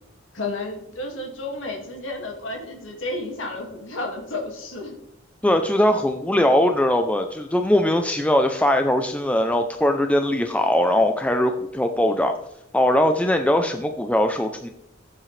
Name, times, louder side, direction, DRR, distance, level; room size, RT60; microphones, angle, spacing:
voice 1, 0.3-5.0, left 2 dB, 85° left, 1 dB, 2.2 m, -32 dB
voice 2, 5.4-12.3 12.7-14.7, left 1 dB, 5° left, 5 dB, 0.5 m, -20 dB
14.5 x 7.5 x 3.3 m, 0.81 s
head